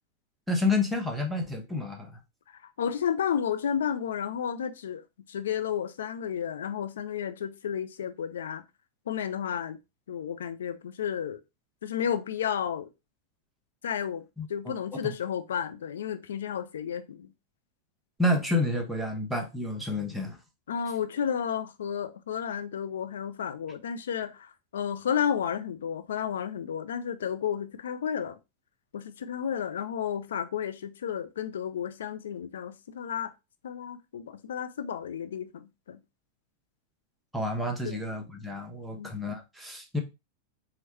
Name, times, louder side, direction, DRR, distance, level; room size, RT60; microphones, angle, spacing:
voice 1, 0.5-2.1 14.4-14.7 15.0-15.1 18.2-20.4 37.3-40.0, left 2 dB, 5° right, 1.1 m, -29 dB
voice 2, 2.8-5.0 5.3-8.6 9.1-9.8 10.1-11.4 11.8-12.9 13.8-14.2 14.5-17.3 20.7-28.4 28.9-33.3 33.6-36.0 37.8-38.0 38.9-39.1, left 8 dB, 65° left, 0.5 m, -32 dB
4.6 x 3.2 x 3.0 m
figure-of-eight pair, 90°, 0 cm